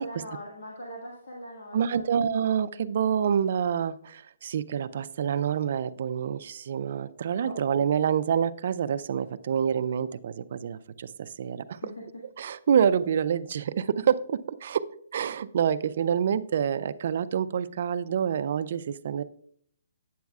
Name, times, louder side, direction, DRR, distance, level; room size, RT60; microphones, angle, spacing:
voice 1, 0.0-2.0 7.4-7.6 11.8-12.0, equal, 80° left, -3 dB, 1.7 m, -41 dB
voice 2, 1.7-11.8 12.4-14.9 15.1-19.2, right 8 dB, 50° right, 13 dB, 0.3 m, -27 dB
9.2 x 7.1 x 2.3 m, 0.64 s
hypercardioid pair, 165°, 0 cm